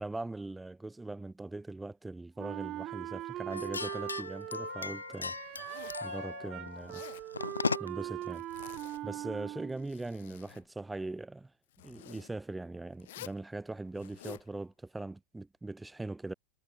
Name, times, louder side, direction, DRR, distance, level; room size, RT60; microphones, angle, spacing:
voice 1, 0.0-5.3 6.0-7.0 7.8-8.4 9.0-11.5 11.8-16.3, right 2 dB, 5° right, 3.4 m, -41 dB
Wind instrument woodwind instrument, 2.4-9.9, right 15 dB, 35° right, 0.5 m, -41 dB
sound 1, 3.5-8.1, left 4 dB, 80° left, 0.3 m, -37 dB
Zipper (clothing), 5.5-6.1 6.8-7.3 8.3-9.0 9.6-10.7 11.7-12.3 13.0-13.4 14.0-14.5, left 16 dB, 55° left, 2.1 m, -50 dB
figure-of-eight pair, 90°, 0 cm